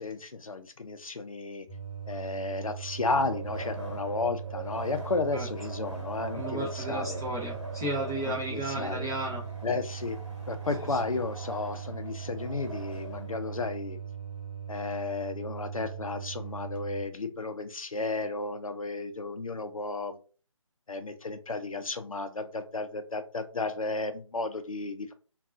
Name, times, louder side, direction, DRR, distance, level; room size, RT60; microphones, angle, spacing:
voice 1, 0.0-1.7 2.1-7.2 8.2-9.1 9.6-10.2 10.5-14.0 14.7-20.2 20.9-25.1, left 3 dB, 80° left, 9 dB, 0.5 m, -33 dB
sound 1, 1.7-17.0, right 8 dB, 40° left, 1.1 m, -40 dB
Wind, 3.2-13.5, right 1 dB, 55° right, 1.0 m, -43 dB
voice 2, 6.3-9.4 10.9-11.0, right 1 dB, 10° right, -8 dB, 0.3 m, -33 dB
3.6 x 2.3 x 2.5 m, 0.39 s
figure-of-eight pair, 145°, 17 cm